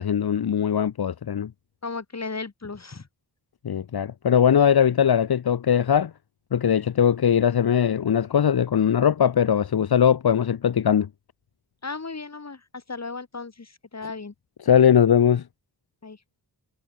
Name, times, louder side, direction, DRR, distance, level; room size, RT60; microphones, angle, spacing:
voice 1, 0.0-1.5 3.6-6.1 6.5-11.1 14.6-15.4, left 8 dB, 80° left, 1.3 m, -20 dB
voice 2, 1.8-3.1 11.8-14.3 16.0-16.2, left 4 dB, 45° left, 7.5 m, -35 dB
wide cardioid pair, 90°, 37 cm